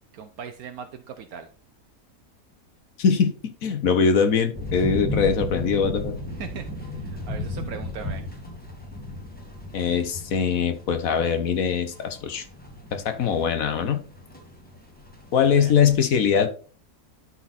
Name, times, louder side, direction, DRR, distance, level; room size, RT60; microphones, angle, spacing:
voice 1, 0.1-1.5 6.4-8.2 15.6-15.7, right 7 dB, 75° right, 6 dB, 1.2 m, -39 dB
voice 2, 3.0-3.3 3.6-6.1 9.7-12.4 12.9-14.0 15.3-16.5, left 6 dB, 65° left, 8 dB, 1.4 m, -22 dB
Thunderstorm Indoor, 4.5-15.9, left 1 dB, 5° left, 1.7 m, -35 dB
12.0 x 4.3 x 4.2 m, 0.39 s
omnidirectional pair, 1.6 m